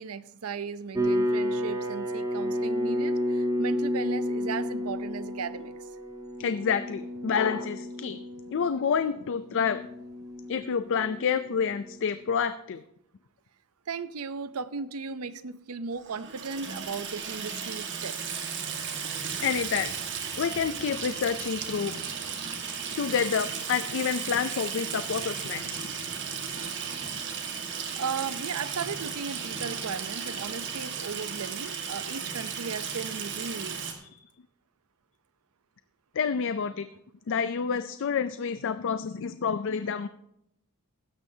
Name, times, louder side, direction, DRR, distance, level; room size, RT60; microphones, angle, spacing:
voice 1, 0.0-5.9 13.9-18.2 28.0-33.9, right 5 dB, 75° right, 14 dB, 0.6 m, -36 dB
sound 1, 0.9-12.0, equal, 15° right, 1.2 m, -31 dB
voice 2, 6.4-8.2 8.5-9.9 10.5-12.8 17.5-17.6 19.4-19.9 20.4-22.0 23.0-25.8 34.1-34.2 36.1-36.9 37.3-40.1, left 6 dB, 60° left, 12 dB, 0.4 m, -28 dB
Water tap faucet / Sink (filling or washing), 16.0-33.9, right 6 dB, 55° right, 1.6 m, -35 dB
15.5 x 12.0 x 2.8 m, 0.79 s
head